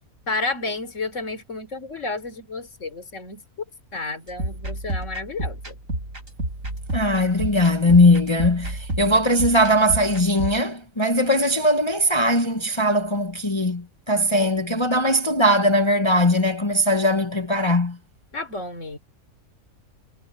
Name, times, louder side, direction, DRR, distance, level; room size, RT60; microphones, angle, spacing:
voice 1, 0.3-3.4 3.9-5.8 18.3-19.0, left 3 dB, 60° left, 3.9 m, -31 dB
sound 1, 4.3-10.6, right 1 dB, 65° right, 7.9 m, -31 dB
voice 2, 6.9-18.0, left 1 dB, 20° left, 1.0 m, -20 dB
omnidirectional pair, 1.5 m